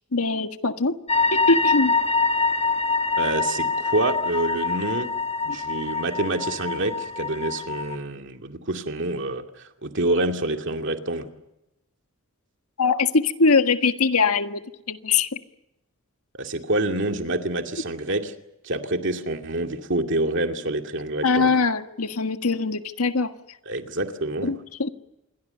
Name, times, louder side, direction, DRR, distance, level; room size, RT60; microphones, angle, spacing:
voice 1, 0.1-1.0 1.3-2.0 5.5-5.6 12.8-14.6 14.9-15.3 21.2-23.3 24.4-24.9, left 4 dB, 85° left, 7 dB, 1.6 m, -22 dB
sound 1, 1.1-8.0, left 4 dB, 30° left, 1.2 m, -25 dB
voice 2, 3.2-5.1 5.4-11.3 16.3-18.3 18.6-21.5 23.7-24.5, right 2 dB, 55° right, 4 dB, 2.4 m, -27 dB
27.5 x 22.5 x 6.9 m, 0.91 s
head